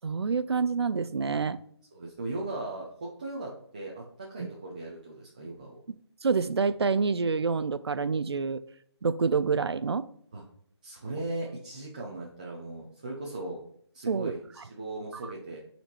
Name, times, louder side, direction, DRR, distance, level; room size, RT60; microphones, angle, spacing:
voice 1, 0.0-1.6 4.4-4.5 6.2-8.6 9.0-10.1 14.1-14.3 15.2-15.3, right 5 dB, 60° right, 15 dB, 0.5 m, -27 dB
voice 2, 1.9-5.8 10.3-10.4 10.8-13.6 13.9-15.6, right 2 dB, 15° right, -2 dB, 0.6 m, -38 dB
8.5 x 4.3 x 4.4 m, 0.64 s
figure-of-eight pair, 170°, 15 cm